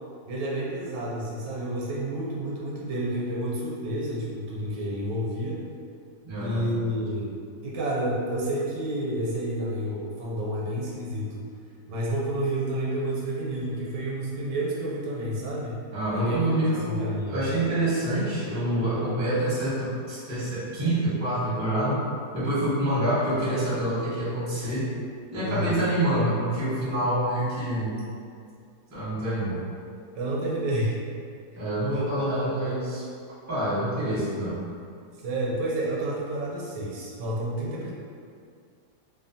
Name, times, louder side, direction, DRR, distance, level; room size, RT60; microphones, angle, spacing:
voice 1, 0.2-5.6 6.3-7.4 7.6-11.5 11.9-15.8 16.1-16.4 16.7-17.5 25.4-25.8 30.1-31.0 31.5-31.6 31.9-32.7 35.2-37.9, right 1 dB, 75° right, -5 dB, 1.2 m, -30 dB
voice 2, 6.2-6.7 15.9-22.0 22.3-24.9 25.3-27.9 28.9-29.6 31.5-33.0 33.5-34.6, right 1 dB, 20° right, -11 dB, 0.5 m, -26 dB
3.0 x 2.1 x 2.6 m, 2.3 s
omnidirectional pair, 1.9 m